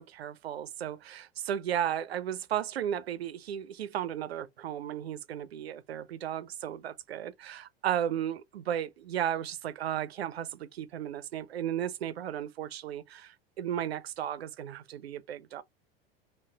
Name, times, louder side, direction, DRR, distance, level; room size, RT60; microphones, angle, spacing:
voice 1, 0.0-15.6, right 10 dB, 85° right, 0.5 m, -34 dB
4.0 x 2.1 x 2.3 m
hypercardioid pair, 85°, 30 cm